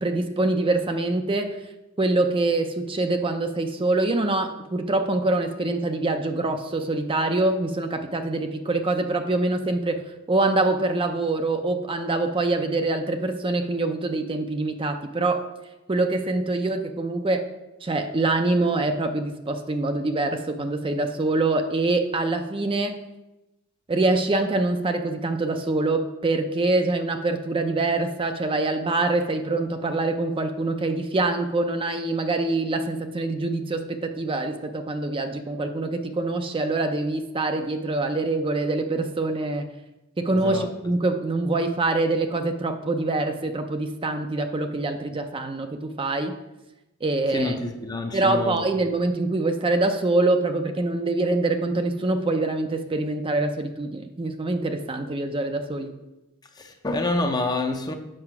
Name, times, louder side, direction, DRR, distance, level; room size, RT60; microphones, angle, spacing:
voice 1, 0.0-1.6 2.0-10.0 10.3-15.4 15.9-17.5 17.8-23.0 23.9-39.7 40.2-46.4 47.0-47.6 48.1-55.9, right 2 dB, 25° right, 0.5 m, -25 dB
voice 2, 40.3-40.7 47.3-48.6 56.6-57.9, left 2 dB, 20° left, 0.6 m, -27 dB
7.6 x 5.8 x 5.9 m
head